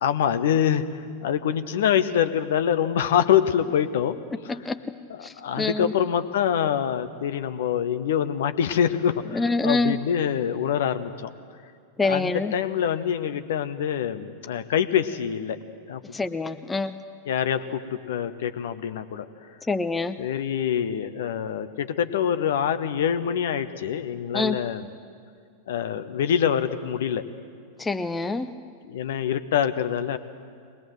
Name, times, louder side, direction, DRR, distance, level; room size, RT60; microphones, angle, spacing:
voice 1, 0.0-4.6 5.1-11.3 12.0-15.6 15.9-16.0 17.3-19.3 20.2-24.9 25.7-27.3 28.8-30.2, left 9 dB, 60° left, 11 dB, 0.9 m, -25 dB
voice 2, 4.5-5.0 5.2-5.9 9.3-10.0 12.0-12.5 16.1-16.9 19.7-20.2 24.3-24.6 27.8-28.5, left 3 dB, 10° left, 9 dB, 0.7 m, -26 dB
22.0 x 20.0 x 7.9 m, 2.2 s
figure-of-eight pair, 90°, 0 cm